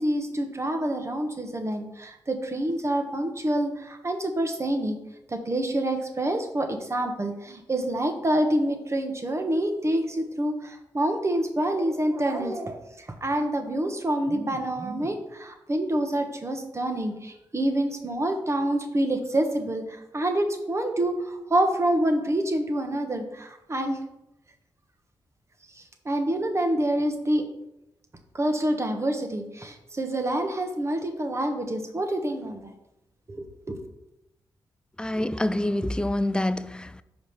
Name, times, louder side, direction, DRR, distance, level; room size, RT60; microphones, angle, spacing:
voice 1, 0.0-5.0 5.3-24.0 25.7-27.4 28.3-32.7 33.3-33.8, right 1 dB, 35° right, 1.2 m, -27 dB
voice 2, 35.0-37.0, left 1 dB, 10° left, 0.4 m, -26 dB
5.0 x 5.0 x 5.6 m
cardioid pair, 60°, 9 cm